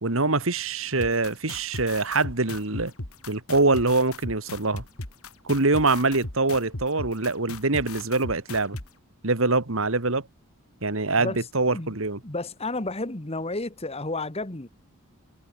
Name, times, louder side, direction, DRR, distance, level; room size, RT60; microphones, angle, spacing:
voice 1, 0.0-2.9 3.3-4.8 5.4-8.8 9.2-10.3 10.8-12.2, right 3 dB, 65° right, 2.0 m, -24 dB
sound 1, 1.0-8.9, left 2 dB, 80° left, 3.3 m, -37 dB
voice 2, 12.2-14.7, left 2 dB, 25° left, 1.5 m, -31 dB
head